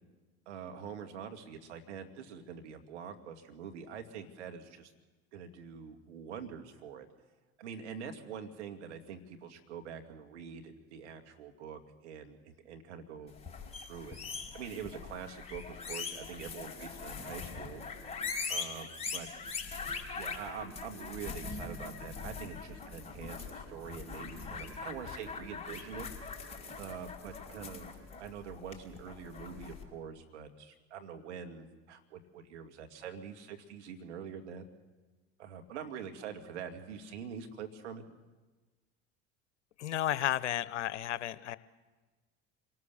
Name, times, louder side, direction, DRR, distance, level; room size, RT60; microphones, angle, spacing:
voice 1, 0.5-4.9 5.3-7.1 7.6-13.3 13.8-14.2 14.5-17.8 18.5-18.9 19.1-19.3 20.1-26.1 26.8-27.9 28.2-34.6 35.4-38.0, right 7 dB, 80° right, 5 dB, 2.3 m, -45 dB
sound 1, 13.3-29.8, left 4 dB, 20° left, 5.1 m, -42 dB
voice 2, 39.8-41.6, left 12 dB, 80° left, 16 dB, 0.9 m, -32 dB
26.5 x 18.5 x 7.1 m, 1.3 s
hypercardioid pair, 70°, 34 cm